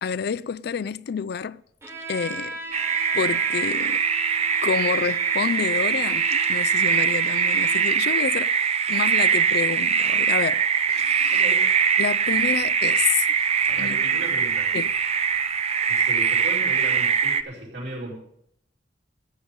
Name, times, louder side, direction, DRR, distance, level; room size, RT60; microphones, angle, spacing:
voice 1, 0.0-1.6 2.1-2.6 3.1-4.0 4.6-8.5 8.9-10.6 10.9-11.4 12.0-13.3 13.8-14.0 14.7-15.0, left 7 dB, 60° left, 0.4 m, -28 dB
Bowed string instrument, 1.8-8.1, right 2 dB, 15° right, 2.3 m, -37 dB
sound 1, 2.7-17.4, right 6 dB, 35° right, 0.6 m, -22 dB
voice 2, 11.3-11.7 13.7-14.7 15.9-18.2, right 1 dB, 90° right, 4.8 m, -36 dB
14.0 x 8.7 x 5.3 m
head